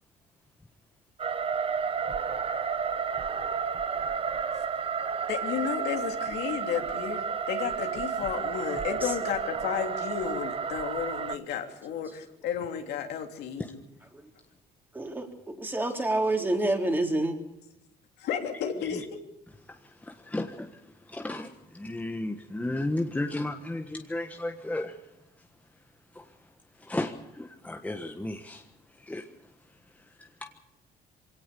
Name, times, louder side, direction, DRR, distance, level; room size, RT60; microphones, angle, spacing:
sound 1, 1.2-11.4, right 6 dB, 35° right, 1.0 m, -31 dB
voice 1, 5.3-13.8 18.2-19.2, left 8 dB, 80° left, 4 dB, 3.2 m, -33 dB
voice 2, 14.9-15.3 15.6-17.3, right 2 dB, 10° right, 3 dB, 3.6 m, -27 dB
voice 3, 19.7-20.7 21.1-24.9 26.1-26.2 26.8-28.6 29.0-29.2 30.4-30.6, left 1 dB, 10° left, 4 dB, 1.4 m, -34 dB
23.5 x 17.5 x 7.0 m, 0.92 s
cardioid pair, 110°, 17 cm